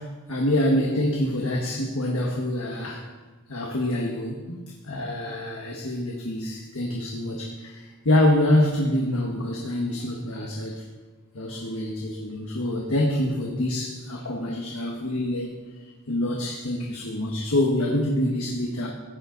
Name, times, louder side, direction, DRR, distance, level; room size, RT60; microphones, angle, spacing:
voice 1, 0.0-3.1 3.5-4.6 4.8-10.8 11.3-15.6 16.1-18.9, left 1 dB, 75° left, 0 dB, 1.4 m, -26 dB
15.5 x 9.4 x 4.0 m, 1.3 s
head